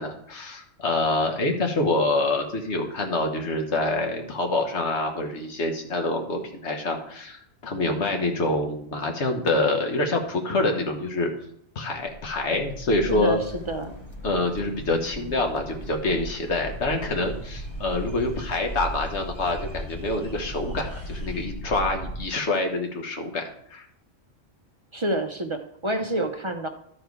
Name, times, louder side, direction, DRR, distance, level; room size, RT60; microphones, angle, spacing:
voice 1, 0.0-7.4 7.6-11.3 11.7-13.4 14.2-23.4 23.7-23.8, left 2 dB, 65° left, 4 dB, 1.6 m, -26 dB
sound 1, 12.0-22.3, equal, 35° left, 0.4 m, -37 dB
voice 2, 13.1-13.9 24.9-26.7, right 1 dB, 35° right, 6 dB, 0.5 m, -28 dB
sound 2, 13.4-21.5, equal, 20° left, 2.5 m, -47 dB
13.0 x 4.8 x 4.7 m, 0.69 s
omnidirectional pair, 1.3 m